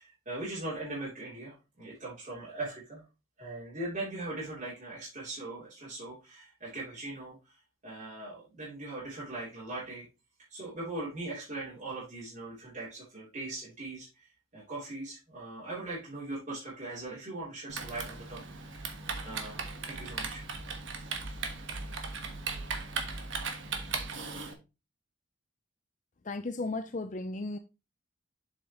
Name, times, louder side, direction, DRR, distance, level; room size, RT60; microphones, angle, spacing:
voice 1, 0.0-3.0 3.4-7.6 7.8-10.0 10.5-14.2 14.5-18.4 18.8-18.9 19.2-20.4, right 2 dB, 35° right, 3.4 m, -40 dB
Typing, 17.7-24.5, right 4 dB, 65° right, 1.4 m, -37 dB
voice 2, 26.3-27.6, left 2 dB, 35° left, 0.5 m, -35 dB
7.5 x 6.1 x 3.0 m
head